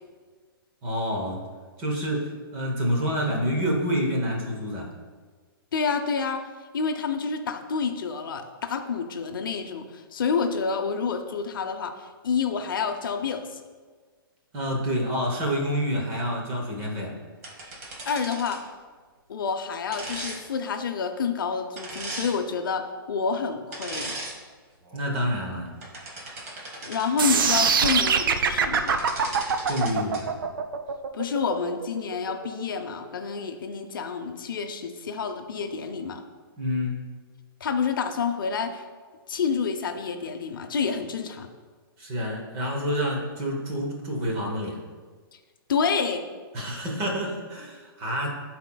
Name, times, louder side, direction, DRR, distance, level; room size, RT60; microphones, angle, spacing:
voice 1, 0.8-1.4 1.8-4.9 14.5-17.1 24.9-25.7 29.7-30.3 36.6-37.1 42.0-44.8 46.5-48.3, equal, 20° right, 0 dB, 0.9 m, -28 dB
voice 2, 5.7-6.4 6.7-13.6 18.0-18.6 19.3-24.2 26.8-29.0 31.1-36.2 37.6-38.8 39.3-41.5 45.7-46.2, left 5 dB, 60° left, 6 dB, 0.6 m, -28 dB
sound 1, 17.4-18.7 19.9-20.4 21.8-22.3 23.7-24.4 24.9-25.0 25.7-27.3 28.5-28.6 28.7-30.2, right 2 dB, 40° right, 1.3 m, -37 dB
sound 2, 27.2-33.2, right 6 dB, 60° right, 0.5 m, -23 dB
12.0 x 4.3 x 2.3 m, 1.5 s
hypercardioid pair, 175°, 12 cm